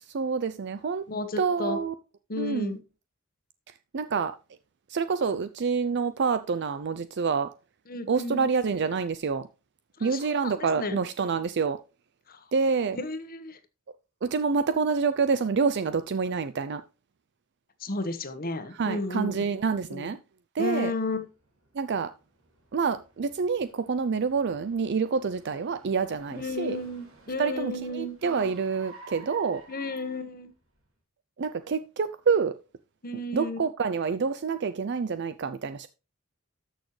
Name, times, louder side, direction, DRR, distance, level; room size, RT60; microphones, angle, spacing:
voice 1, 0.1-1.0 1.4-1.9 2.4-2.8 3.9-4.3 4.9-7.5 8.1-9.5 10.0-11.8 12.5-13.0 14.2-16.8 18.8-20.2 20.5-20.9 21.8-22.1 22.7-26.8 27.4-29.6 31.4-32.5 33.3-35.9, right 5 dB, 55° right, 0.5 m, -27 dB
voice 2, 1.1-1.8 2.3-2.8 7.9-8.5 10.0-11.0 12.3-12.5 12.9-13.6 17.8-19.4 19.9-20.1 20.6-21.3 26.3-28.2 29.7-30.5 33.0-33.7, left 2 dB, 45° left, 1.3 m, -33 dB
Car, 21.2-30.8, right 3 dB, 80° right, 2.8 m, -52 dB
13.0 x 6.4 x 3.2 m
head